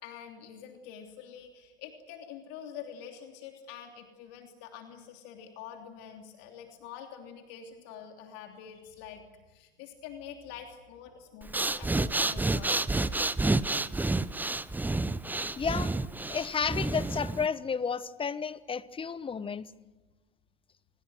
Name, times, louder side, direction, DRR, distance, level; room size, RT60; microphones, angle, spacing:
voice 1, 0.0-13.0, left 8 dB, 55° left, 3 dB, 3.2 m, -46 dB
Breathing, 11.4-17.5, right 2 dB, 5° right, 0.7 m, -29 dB
voice 2, 15.6-15.9 16.3-19.7, left 6 dB, 20° left, 16 dB, 1.1 m, -32 dB
27.5 x 19.5 x 7.9 m, 1.2 s
hypercardioid pair, 90°, 30 cm